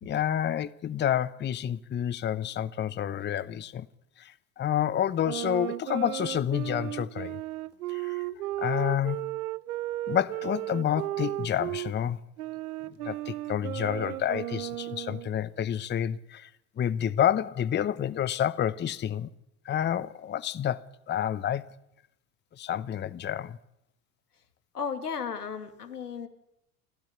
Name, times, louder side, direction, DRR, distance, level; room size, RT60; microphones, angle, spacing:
voice 1, 0.0-3.9 4.2-7.4 7.9-8.2 8.6-9.2 10.1-12.2 13.0-16.5 16.8-19.3 19.6-21.6 22.6-23.6, left 10 dB, 25° left, 0.8 m, -29 dB
sound 1, 5.2-11.9 12.4-15.3, right 16 dB, 75° right, 0.8 m, -35 dB
voice 2, 24.7-26.3, left 6 dB, 90° left, 2.7 m, -34 dB
29.5 x 13.5 x 9.8 m
hypercardioid pair, 80°, 45 cm